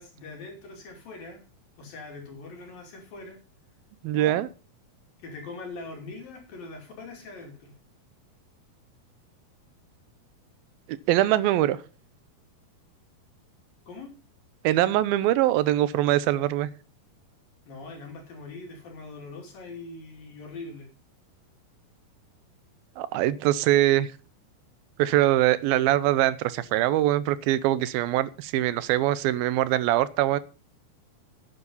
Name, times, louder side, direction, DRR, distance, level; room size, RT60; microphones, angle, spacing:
voice 1, 0.0-1.4 1.8-3.4 4.1-4.4 5.2-7.8 13.9-14.1 17.7-20.9, left 3 dB, 70° left, 4.4 m, -42 dB
voice 2, 4.0-4.5 11.1-11.8 14.6-16.7 23.0-24.1 25.0-30.4, right 14 dB, 80° right, 2.6 m, -23 dB
11.5 x 9.7 x 5.5 m
omnidirectional pair, 4.2 m